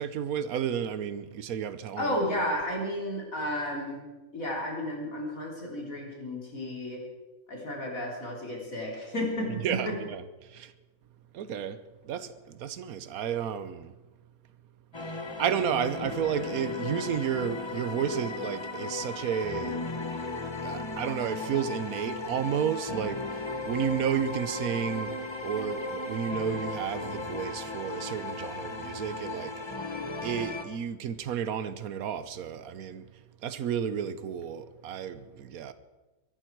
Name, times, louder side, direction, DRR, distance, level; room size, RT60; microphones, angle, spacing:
voice 1, 0.0-2.2 9.6-10.7 11.3-13.9 15.0-19.8 20.6-33.0 33.4-35.7, right 8 dB, 80° right, 1.3 m, -32 dB
voice 2, 2.0-4.0 4.3-7.0 7.5-10.0, left 1 dB, 70° left, 4.0 m, -32 dB
sound 1, 14.9-30.6, left 2 dB, 20° left, 1.0 m, -36 dB
23.0 x 11.5 x 4.6 m
omnidirectional pair, 1.5 m